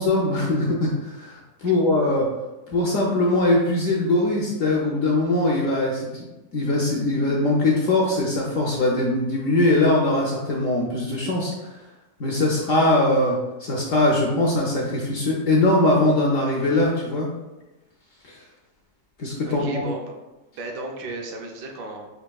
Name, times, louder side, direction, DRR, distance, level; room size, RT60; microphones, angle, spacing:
voice 1, 0.0-2.3 2.7-6.3 6.5-11.5 12.2-17.3 19.2-19.8, left 2 dB, 65° left, -2 dB, 0.8 m, -21 dB
voice 2, 19.5-20.1 20.5-22.1, right 2 dB, 75° right, 1 dB, 1.1 m, -35 dB
5.2 x 2.9 x 2.3 m, 1.0 s
omnidirectional pair, 1.8 m